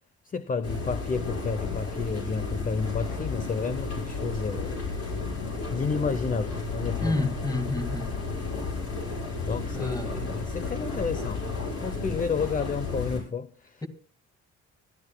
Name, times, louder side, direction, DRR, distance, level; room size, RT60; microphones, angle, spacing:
voice 1, 0.2-4.8 5.7-7.2 9.4-11.5 11.8-13.8, left 5 dB, 25° left, 0.7 m, -31 dB
sound 1, 0.6-13.2, left 3 dB, 55° left, 7.0 m, -33 dB
voice 2, 7.0-8.1 9.7-10.2 13.8-13.9, left 2 dB, 10° left, 2.2 m, -29 dB
25.0 x 12.0 x 2.2 m
cardioid pair, 90°, 30 cm